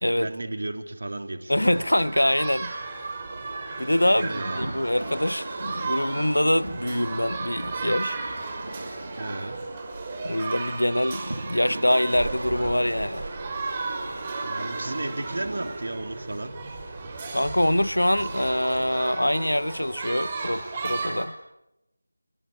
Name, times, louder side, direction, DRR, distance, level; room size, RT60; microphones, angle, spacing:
voice 1, 0.1-1.8 4.1-4.6 9.2-9.6 14.4-16.5, right 2 dB, 55° right, 3.3 m, -34 dB
voice 2, 1.5-2.7 3.8-8.2 10.2-13.2 17.3-21.3, left 1 dB, 85° left, 1.0 m, -24 dB
sound 1, 1.6-21.2, right 3 dB, 20° right, 5.9 m, -34 dB
sound 2, 4.6-10.5 11.3-15.8, right 1 dB, 70° right, 3.2 m, -39 dB
27.0 x 21.5 x 9.9 m
figure-of-eight pair, 165°, 0 cm